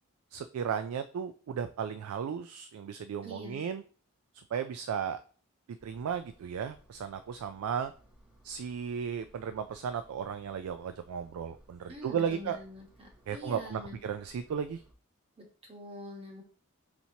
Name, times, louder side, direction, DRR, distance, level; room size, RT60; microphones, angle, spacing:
voice 1, 0.3-3.8 4.5-5.2 5.7-7.9 8.4-12.6 13.3-14.8, right 7 dB, 80° right, 10 dB, 0.3 m, -35 dB
voice 2, 3.2-3.7 11.9-14.0 15.4-16.4, left 1 dB, 25° right, 1 dB, 1.0 m, -45 dB
Engine, 5.8-14.9, right 1 dB, 5° right, 0.7 m, -61 dB
4.4 x 4.2 x 2.8 m, 0.41 s
head